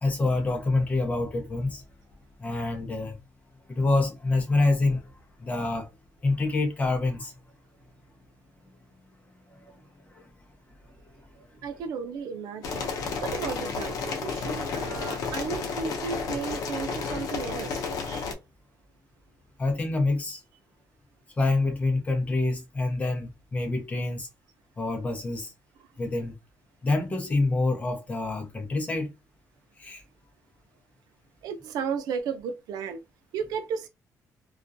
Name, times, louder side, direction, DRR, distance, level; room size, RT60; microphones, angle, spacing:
voice 1, 0.0-1.8 2.4-3.2 3.7-5.1 5.4-5.9 6.2-7.3 9.5-9.7 10.0-10.3 19.6-20.4 21.4-24.3 24.8-25.5 26.0-26.4 26.8-29.1 29.8-30.0, left 2 dB, 20° left, 0.7 m, -26 dB
voice 2, 11.6-12.9 13.2-18.3 31.4-33.0 33.3-33.9, right 6 dB, 90° right, 0.4 m, -34 dB
sound 1, 12.6-18.3, left 4 dB, 70° left, 0.6 m, -32 dB
2.3 x 2.2 x 2.6 m
cardioid pair, 160°, 6 cm